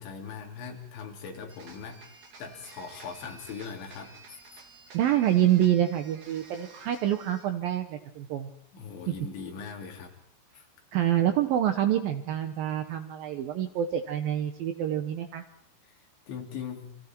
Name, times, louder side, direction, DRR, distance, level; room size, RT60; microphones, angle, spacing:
voice 1, 0.0-2.0 2.4-4.4 8.7-10.1 10.5-10.7 15.8-17.0, left 6 dB, 75° left, 2 dB, 5.4 m, -40 dB
sound 1, 1.5-7.6, right 4 dB, 45° right, 4.2 m, -52 dB
voice 2, 4.9-8.5 10.9-15.4, right 11 dB, 70° right, 8 dB, 2.2 m, -26 dB
30.0 x 25.5 x 4.5 m, 0.63 s
omnidirectional pair, 5.3 m